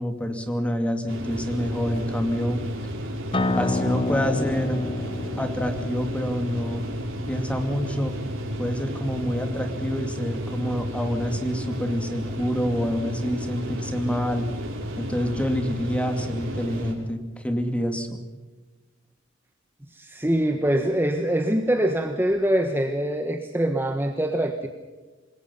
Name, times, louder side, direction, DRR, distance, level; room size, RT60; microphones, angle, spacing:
voice 1, 0.0-2.6 3.5-4.8 5.4-6.8 7.3-8.1 8.6-14.5 15.0-18.2, equal, 5° left, 6 dB, 2.5 m, -27 dB
sound 1, 1.1-16.9, equal, 85° right, 6.4 m, -32 dB
Acoustic guitar, 3.3-8.5, left 2 dB, 25° left, 0.8 m, -30 dB
voice 2, 19.9-24.7, right 1 dB, 10° right, 5 dB, 1.3 m, -24 dB
26.5 x 21.0 x 5.7 m, 1.3 s
head